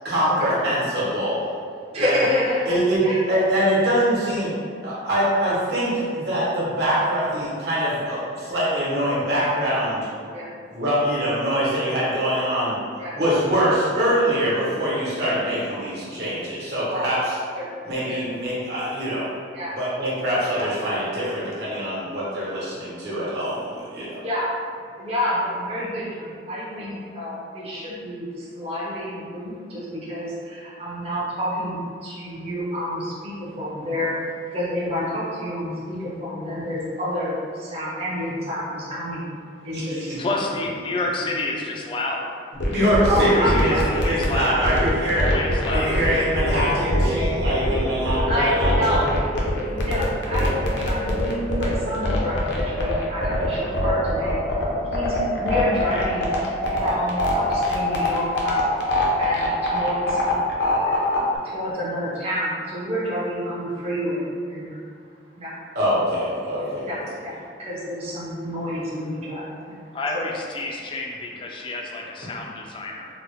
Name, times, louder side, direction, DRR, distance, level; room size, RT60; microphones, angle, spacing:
voice 1, 0.0-1.5 1.9-2.2 2.7-4.5 4.8-10.1 10.7-12.7 13.1-17.4 17.8-19.2 19.7-24.2 39.7-40.2 42.7-43.8 44.0-45.3 45.7-49.0 65.7-66.9, equal, 60° right, -8 dB, 1.1 m, -23 dB
voice 2, 1.9-3.2 3.5-3.7 4.0-4.1 7.2-7.3 8.0-8.1 8.9-9.0 10.3-10.5 13.0-13.2 15.6-15.8 16.9-17.1 17.4-17.7 18.1-18.2 19.5-19.7 20.5-20.7 24.2-24.5 25.0-41.0 41.3-41.4 41.8-41.9 43.1-44.3 45.0-46.1 46.5-47.5 48.3-49.0 49.6-54.4 54.8-56.3 56.7-58.7 59.2-60.2 60.7-61.2 61.4-64.8 65.4-65.5 66.6-70.3 70.5-71.3, equal, 35° right, -8 dB, 0.6 m, -29 dB
voice 3, 40.2-42.3 43.2-44.6 45.2-46.0 69.9-73.1, left 2 dB, 25° left, 0 dB, 0.3 m, -29 dB
sound 1, 42.6-61.4, left 1 dB, 80° left, 0.6 m, -23 dB
3.9 x 2.0 x 3.0 m, 2.2 s
head